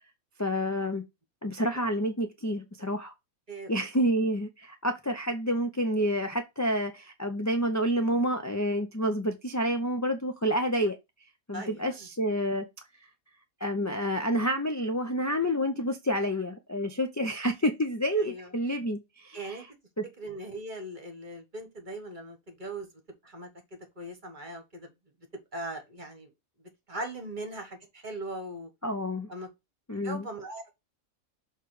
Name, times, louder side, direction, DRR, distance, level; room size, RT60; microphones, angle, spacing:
voice 1, 0.4-1.0 1.4-3.1 3.7-11.0 11.5-12.7 13.6-19.6 20.0-20.1 28.8-29.3 29.9-30.3, equal, 20° left, 0.5 m, -29 dB
voice 2, 11.5-12.1 18.2-18.5 19.3-19.6 20.2-22.9 23.2-24.9 25.3-26.3 26.9-28.7 29.3-29.5 29.9-30.7, right 1 dB, 35° right, 1.5 m, -40 dB
6.6 x 3.3 x 4.8 m
omnidirectional pair, 1.5 m